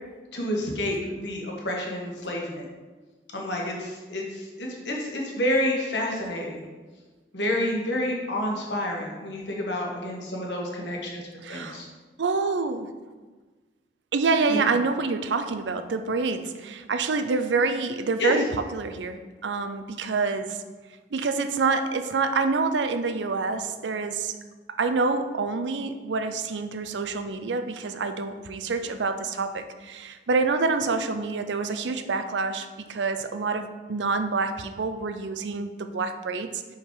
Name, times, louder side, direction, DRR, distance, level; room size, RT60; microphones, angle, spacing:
voice 1, 0.3-2.6 3.3-6.6 7.3-11.2 11.5-11.9 14.5-14.6 18.2-18.3, left 1 dB, 85° left, -1 dB, 1.4 m, -29 dB
voice 2, 11.4-11.8 12.2-12.9 14.1-20.6 21.1-24.3 24.8-36.8, right 4 dB, 85° right, 9 dB, 0.5 m, -27 dB
5.4 x 4.8 x 4.8 m, 1.3 s
head